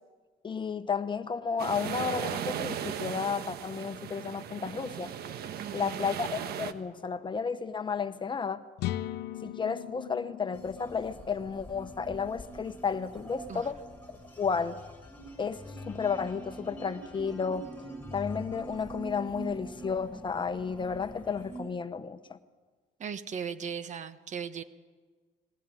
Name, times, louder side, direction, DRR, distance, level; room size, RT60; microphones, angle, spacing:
voice 1, 0.4-5.1 5.7-8.6 9.4-13.8 14.4-14.8 15.4-17.7 18.1-22.4, left 6 dB, 30° left, 11 dB, 1.0 m, -32 dB
sound 1, 1.6-6.7, right 9 dB, 70° right, 1.3 m, -37 dB
voice 2, 5.6-6.1 13.5-13.7 23.0-24.6, right 7 dB, 45° right, 11 dB, 1.4 m, -38 dB
sound 2, 8.8-12.6, left 14 dB, 80° left, 0.7 m, -39 dB
sound 3, 10.5-21.6, right 1 dB, 10° left, 6.0 m, -44 dB
21.0 x 18.5 x 9.2 m, 1.4 s
cardioid pair, 110°, 17 cm